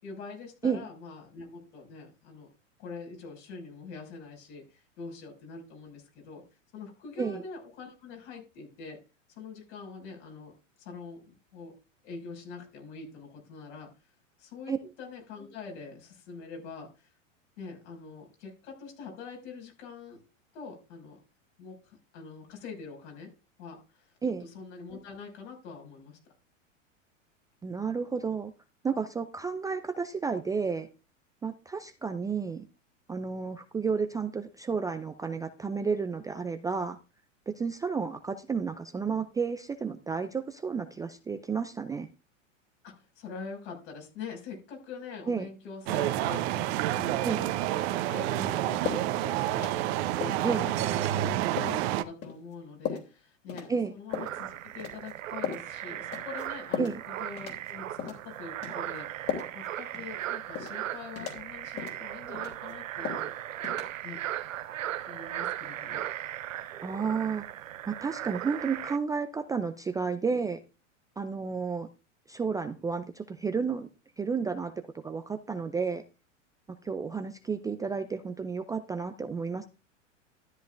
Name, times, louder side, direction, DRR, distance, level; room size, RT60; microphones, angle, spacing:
voice 1, 0.0-2.5 2.8-6.4 6.7-9.0 9.3-10.5 10.8-11.7 12.0-13.9 14.4-17.1 17.6-20.2 20.5-21.2 21.6-23.3 23.6-24.1 24.4-26.2 42.8-47.5 48.1-63.3 64.0-64.2 65.1-66.1, left 4 dB, 65° left, 1 dB, 5.9 m, -44 dB
voice 2, 27.6-28.5 28.8-30.9 31.4-32.6 33.1-37.0 37.5-42.1 45.3-45.5 47.2-47.5 50.4-50.7 53.7-53.9 56.8-57.0 66.8-70.6 71.2-71.9 72.3-73.9 74.2-74.7 75.0-76.0 76.8-79.7, right 5 dB, 10° right, 8 dB, 0.4 m, -31 dB
sound 1, 45.9-52.0, right 13 dB, 55° right, 0.9 m, -29 dB
sound 2, 48.8-49.1 49.5-49.9 50.2-50.4 50.9-51.0 51.6-51.8 52.2-52.4 52.9-53.1 53.5-53.7 54.1-54.4 54.8-55.1 55.4-55.7 56.1-56.5 56.7-57.0 57.4-57.7 58.0-58.2 58.6-58.8 59.3-59.7 59.9-60.1 60.6-60.8 61.2-61.4 61.8-62.0 62.3-62.7 63.1-63.3 63.6-63.8, left 8 dB, 40° left, 3.2 m, -35 dB
sound 3, 54.1-69.0, right 12 dB, 80° right, 0.6 m, -37 dB
13.0 x 10.0 x 2.5 m, 0.31 s
hypercardioid pair, 100°, 38 cm